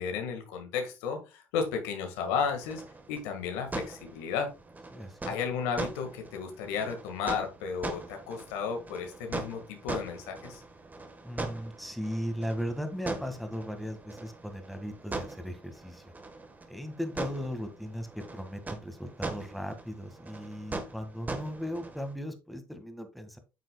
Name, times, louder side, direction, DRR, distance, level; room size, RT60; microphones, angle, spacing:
voice 1, 0.0-2.8 3.1-4.5 5.3-10.6, left 6 dB, 80° left, 5 dB, 1.7 m, -33 dB
sound 1, 2.3-22.1, right 3 dB, 25° right, 1.4 m, -41 dB
voice 2, 4.9-5.4 11.2-16.0 16.7-23.4, equal, ahead, 7 dB, 1.8 m, -37 dB
8.9 x 6.2 x 2.3 m, 0.29 s
hypercardioid pair, 65°, 7 cm